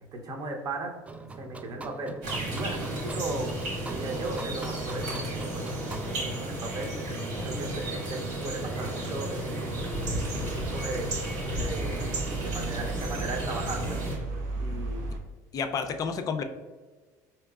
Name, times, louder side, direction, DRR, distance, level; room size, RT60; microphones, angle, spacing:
voice 1, 0.1-1.0 1.3-2.2 2.5-3.5 3.8-7.0 7.4-11.1 11.5-12.0 12.3-14.0 14.6-15.0, right 2 dB, 45° right, 3 dB, 0.8 m, -37 dB
sound 1, 1.1-6.1, right 3 dB, 15° right, 0.3 m, -41 dB
sound 2, 2.2-14.2, right 1 dB, 75° right, 1.4 m, -33 dB
sound 3, 9.7-15.2, right 3 dB, 90° right, 0.6 m, -36 dB
voice 2, 15.5-16.4, left 6 dB, 40° left, 7 dB, 0.5 m, -30 dB
4.5 x 2.9 x 2.3 m, 1.3 s
supercardioid pair, 90°, 9 cm